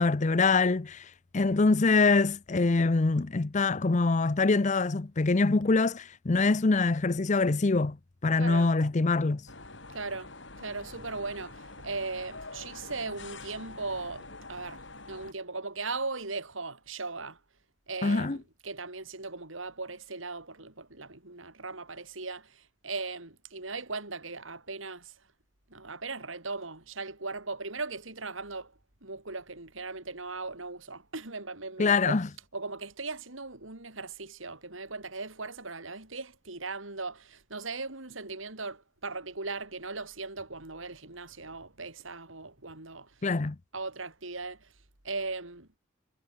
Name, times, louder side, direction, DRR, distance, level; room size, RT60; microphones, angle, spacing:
voice 1, 0.0-8.0 8.2-9.4 18.0-18.4 31.8-32.3 43.2-43.6, left 3 dB, 35° left, 0.6 m, -24 dB
voice 2, 8.3-8.7 9.9-17.4 17.9-25.1 25.7-28.7 29.0-32.2 32.5-43.3 43.7-44.7 45.0-45.7, right 3 dB, 80° right, 4.5 m, -38 dB
sound 1, 9.5-15.3, left 3 dB, 65° left, 6.9 m, -46 dB
head